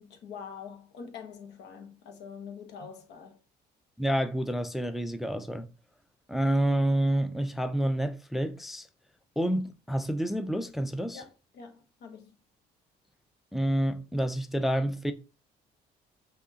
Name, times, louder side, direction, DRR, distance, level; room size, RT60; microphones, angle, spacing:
voice 1, 0.0-3.4 11.1-12.4, left 6 dB, 70° left, 1.2 m, -45 dB
voice 2, 4.0-5.7 6.3-8.9 9.4-11.2 13.5-15.1, right 1 dB, ahead, 0.4 m, -28 dB
6.0 x 2.8 x 2.7 m
cardioid pair, 95°, 18 cm